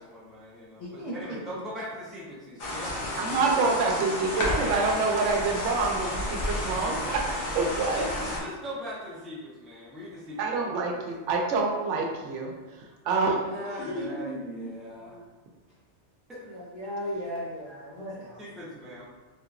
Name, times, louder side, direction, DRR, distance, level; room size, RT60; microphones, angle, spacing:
voice 1, 0.0-3.2 7.9-10.7 13.4-15.2 16.3-16.6 18.4-19.0, equal, ahead, -7 dB, 0.5 m, -41 dB
voice 2, 0.8-1.6 8.0-8.1 13.5-15.2 16.4-18.4 18.9-19.0, equal, 25° left, -9 dB, 0.9 m, -37 dB
sound 1, 2.6-8.4, left 1 dB, 60° left, 0.8 m, -31 dB
voice 3, 3.2-8.0 10.4-13.9, right 4 dB, 85° right, 1 dB, 0.9 m, -27 dB
3.6 x 2.8 x 2.4 m, 1.2 s
omnidirectional pair, 1.2 m